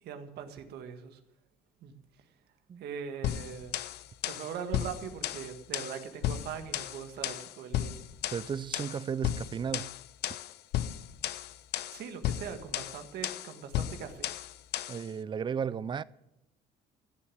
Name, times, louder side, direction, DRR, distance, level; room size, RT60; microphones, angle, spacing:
voice 1, 0.0-1.2 1.8-2.0 2.8-3.7 4.2-8.0 11.9-14.3, right 7 dB, 75° right, 1.8 m, -41 dB
sound 1, 3.2-15.1, left 12 dB, 75° left, 0.7 m, -35 dB
voice 2, 8.3-9.9 14.9-16.0, right 7 dB, 30° right, 0.5 m, -34 dB
15.0 x 7.1 x 9.8 m
cardioid pair, 110°, 17 cm